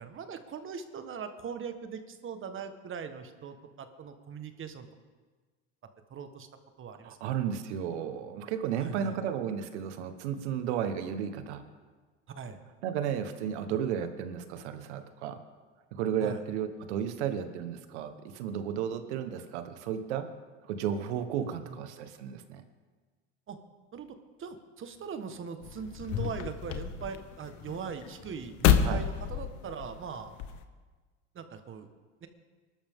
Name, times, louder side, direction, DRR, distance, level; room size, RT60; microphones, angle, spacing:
voice 1, 0.0-4.9 6.1-6.5 6.8-7.4 8.8-9.2 12.4-12.6 16.2-16.4 21.4-21.8 23.5-23.6 23.9-30.3 31.3-31.9 32.2-32.3, right 6 dB, 35° right, 8 dB, 1.4 m, -41 dB
voice 2, 7.0-11.6 12.8-15.4 15.9-20.3 20.6-22.6 28.8-29.0, right 8 dB, 85° right, 9 dB, 1.3 m, -33 dB
sound 1, 25.6-30.6, left 9 dB, 60° left, 1.2 m, -30 dB
23.0 x 13.0 x 3.7 m, 1.4 s
supercardioid pair, 100°, 33 cm